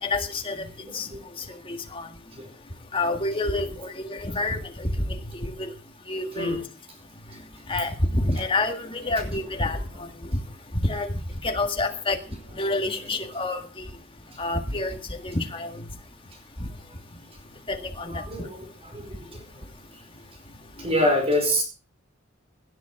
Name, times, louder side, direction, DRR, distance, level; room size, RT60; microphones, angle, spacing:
voice 1, 0.0-0.6 0.9-1.1 1.7-2.1 2.9-4.9 5.3-5.7 6.1-6.6 7.7-9.8 10.8-11.1 11.4-12.2 12.6-13.6 14.4-15.0 15.2-15.7 16.6-16.7 17.7-18.2, left 2 dB, 25° left, 5 dB, 1.8 m, -27 dB
voice 2, 0.8-1.2 2.4-2.5 6.4-6.6 12.8-12.9 18.1-18.6 18.9-19.4 20.8-21.6, left 1 dB, 30° right, 4 dB, 4.7 m, -26 dB
18.0 x 10.5 x 4.8 m, 0.36 s
head